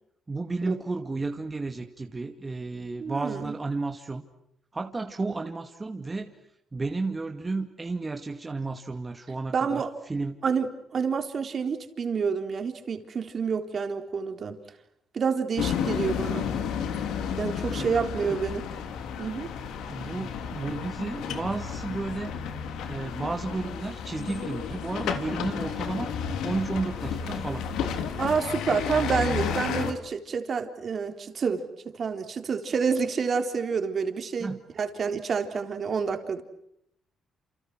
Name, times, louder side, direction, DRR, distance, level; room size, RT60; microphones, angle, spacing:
voice 1, 0.3-4.2 4.7-6.4 6.7-10.4 17.7-17.9 18.3-18.4 19.9-22.4 22.9-26.1 26.4-27.7 34.4-34.6, right 3 dB, 25° right, 4 dB, 2.3 m, -32 dB
voice 2, 3.0-3.5 9.5-9.9 10.4-14.6 15.1-16.5 17.4-18.7 19.2-19.5 28.2-36.4, right 5 dB, 50° right, 6 dB, 3.9 m, -28 dB
sound 1, 15.6-29.9, left 7 dB, 85° left, 3.4 m, -32 dB
29.5 x 29.0 x 6.3 m, 0.77 s
cardioid pair, 90°, 0 cm